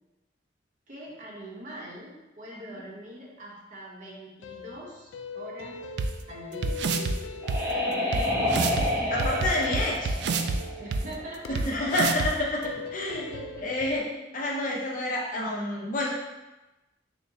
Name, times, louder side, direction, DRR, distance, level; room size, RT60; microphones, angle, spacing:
voice 1, 0.9-5.9 6.3-6.9 7.9-9.5 10.1-11.6 11.9-12.0 13.1-13.7, equal, 45° right, -3 dB, 0.9 m, -43 dB
sound 1, 4.4-14.0, left 5 dB, 90° left, 0.3 m, -41 dB
sound 2, 6.0-6.1 6.6-7.1 7.5-7.6 8.1-8.2 8.5-8.8 9.2-10.6 10.9-11.0 11.5-11.6 11.9-12.3, right 4 dB, 65° right, 0.3 m, -27 dB
sound 3, 6.9-11.5, left 1 dB, 10° right, 0.6 m, -29 dB
voice 2, 8.1-8.5 9.1-10.1 11.5-13.3 13.6-14.0 14.3-16.1, left 1 dB, 45° left, -3 dB, 0.8 m, -29 dB
6.6 x 2.2 x 2.7 m, 1.0 s
head